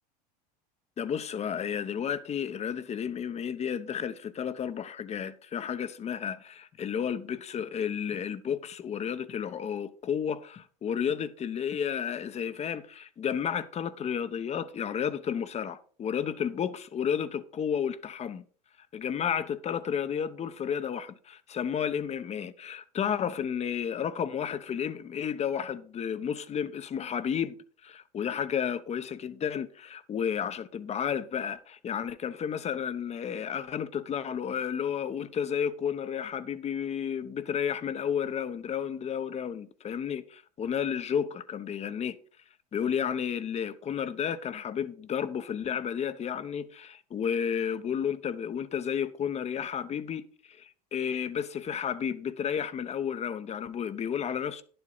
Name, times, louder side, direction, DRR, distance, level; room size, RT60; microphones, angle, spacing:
voice 1, 1.0-18.5 18.9-27.6 27.8-42.2 42.7-54.6, left 8 dB, 30° left, 0.9 m, -32 dB
11.0 x 7.9 x 4.0 m
hypercardioid pair, 85°, 21 cm